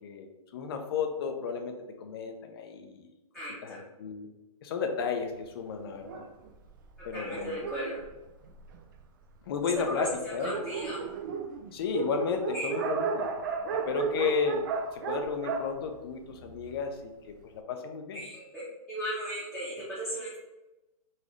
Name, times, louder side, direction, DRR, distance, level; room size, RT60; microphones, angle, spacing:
voice 1, 0.0-3.1 3.6-4.3 4.6-6.2 7.0-7.7 9.5-10.6 11.7-13.3 13.9-14.7 14.9-17.0 17.3-17.4 17.7-18.2, left 6 dB, 40° left, 5 dB, 0.5 m, -33 dB
voice 2, 3.3-3.8 7.1-8.0 9.9-10.0 10.4-11.0 12.5-12.7 18.2-20.4, right 1 dB, ahead, -12 dB, 0.8 m, -36 dB
Dog, 6.0-9.0 9.7-9.8 10.1-10.2 10.4-16.8, right 5 dB, 35° right, 0.4 m, -34 dB
4.0 x 2.5 x 3.0 m, 1.0 s
hypercardioid pair, 155°, 19 cm